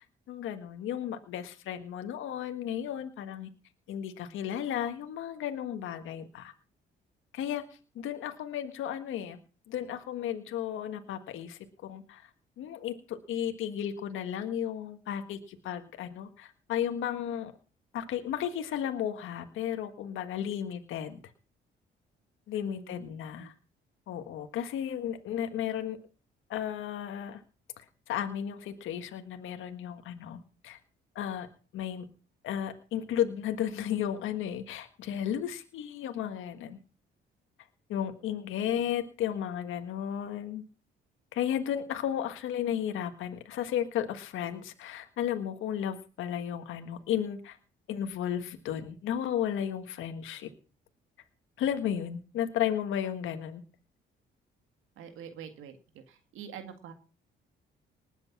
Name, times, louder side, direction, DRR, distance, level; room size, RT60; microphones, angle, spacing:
voice 1, 0.3-3.5 3.9-6.5 7.3-7.6 7.9-9.4 9.7-12.3 12.6-17.5 17.9-21.2 22.5-23.5 24.1-26.0 26.5-27.4 27.8-30.8 31.1-31.5 31.7-32.0 32.4-36.8 37.9-40.6 41.3-47.6 47.9-50.5 51.6-53.6, left 10 dB, 85° left, 7 dB, 1.6 m, -34 dB
voice 2, 22.6-23.5 38.6-38.9 55.0-56.9, right 8 dB, 85° right, 7 dB, 2.0 m, -47 dB
19.5 x 8.2 x 5.9 m, 0.37 s
cardioid pair, 90°, 20 cm